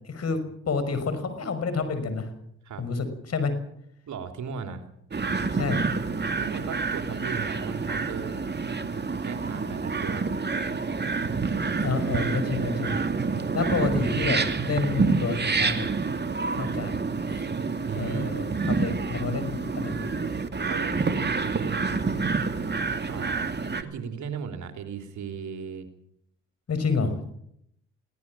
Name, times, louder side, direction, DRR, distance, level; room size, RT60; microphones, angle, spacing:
voice 1, 0.1-2.3 2.8-3.5 5.6-5.8 11.7-13.0 13.5-15.9 16.5-16.9 17.3-17.4 17.9-20.1 26.7-27.3, left 4 dB, 50° left, 10 dB, 5.7 m, -29 dB
voice 2, 4.1-4.8 6.4-8.4 9.2-10.3 17.8-18.3 20.7-22.0 23.1-23.5 23.8-25.9, right 6 dB, 65° right, 6 dB, 3.3 m, -36 dB
sound 1, 5.1-23.8, right 4 dB, 35° right, 2.4 m, -28 dB
21.5 x 17.0 x 7.5 m, 0.73 s
supercardioid pair, 55°, 31 cm